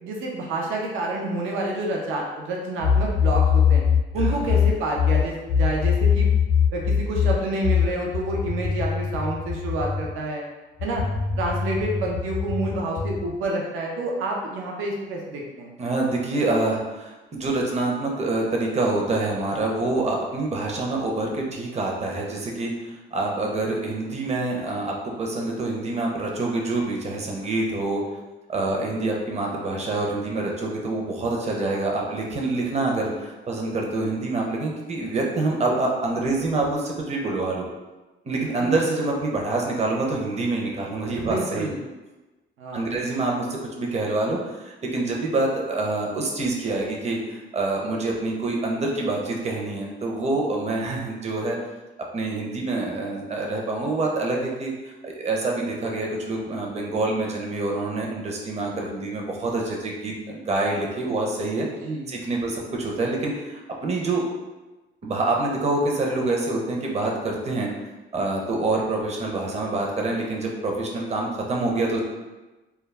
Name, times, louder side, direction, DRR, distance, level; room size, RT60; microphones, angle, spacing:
voice 1, 0.0-3.8 4.1-6.3 6.7-10.4 10.8-11.0 11.4-15.7 38.6-38.7 41.3-41.8 42.6-42.9 61.8-62.1, right 2 dB, 85° right, -1 dB, 0.5 m, -28 dB
sound 1, 2.8-10.1 10.8-13.3, left 7 dB, 70° left, 0.5 m, -22 dB
voice 2, 4.1-4.5 15.8-28.0 28.5-37.6 38.2-41.7 42.7-51.6 52.1-61.7 62.1-64.2 65.0-67.7 68.1-72.0, right 2 dB, 35° right, -1 dB, 0.6 m, -26 dB
2.2 x 2.0 x 3.2 m, 1.2 s
cardioid pair, 90°, 20 cm